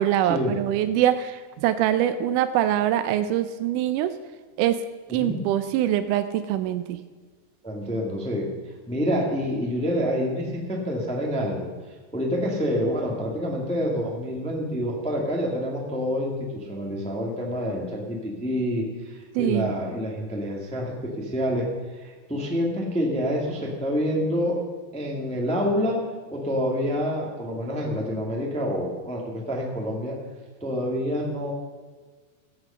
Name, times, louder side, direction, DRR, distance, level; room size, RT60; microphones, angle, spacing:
voice 1, 0.0-4.1 4.6-4.8 5.1-7.0 19.4-19.7, right 11 dB, 80° right, 11 dB, 1.8 m, -23 dB
voice 2, 5.1-5.4 7.6-8.5 8.9-11.7 12.1-24.6 24.9-26.0 26.3-30.2 30.6-31.5, equal, 5° left, -1 dB, 0.9 m, -27 dB
15.5 x 8.2 x 5.6 m, 1.4 s
omnidirectional pair, 4.3 m